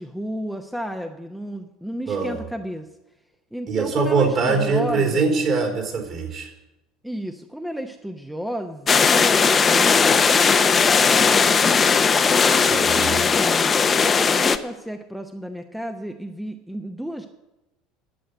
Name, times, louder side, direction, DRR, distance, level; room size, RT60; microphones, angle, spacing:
voice 1, 0.0-2.9 3.5-5.3 7.0-10.1 10.5-13.8 14.2-17.3, equal, ahead, 6 dB, 0.9 m, -33 dB
voice 2, 3.7-6.5 12.7-13.2, right 4 dB, 45° right, 1 dB, 3.6 m, -22 dB
sound 1, 8.9-14.6, left 5 dB, 25° left, 0.8 m, -18 dB
11.5 x 7.8 x 9.4 m, 0.99 s
figure-of-eight pair, 65°, 0 cm